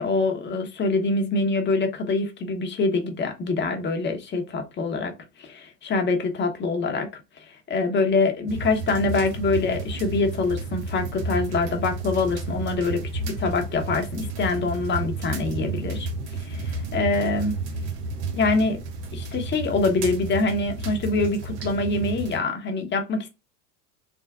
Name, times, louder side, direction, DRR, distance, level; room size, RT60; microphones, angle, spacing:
voice 1, 0.0-5.1 5.4-7.1 7.4-16.1 16.4-17.5 18.3-18.8 19.1-23.3, left 3 dB, 25° left, 0.9 m, -25 dB
sound 1, 8.5-22.4, right 3 dB, 70° right, 1.1 m, -32 dB
3.6 x 2.1 x 3.5 m
hypercardioid pair, 95°, 47 cm